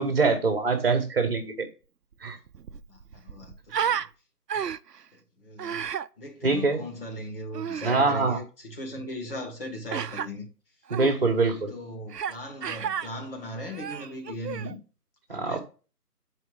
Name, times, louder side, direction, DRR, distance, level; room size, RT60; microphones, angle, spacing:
voice 1, 0.0-1.7 2.2-2.4 4.5-4.7 6.4-6.8 7.8-8.4 10.9-11.7 15.3-15.6, right 4 dB, 35° right, 1.5 m, -24 dB
Human voice, 2.1-2.2 2.5-4.1 4.5-5.0 5.6-6.1 7.5-8.0 9.9-10.3 10.9-11.1 12.1-12.4 12.6-13.1 13.6-14.7, right 8 dB, 85° right, 0.6 m, -32 dB
voice 2, 2.9-4.1 5.1-5.9 6.2-10.5 11.4-14.8 15.3-15.6, equal, 35° left, 2.1 m, -38 dB
9.1 x 4.6 x 3.8 m
figure-of-eight pair, 160°, 47 cm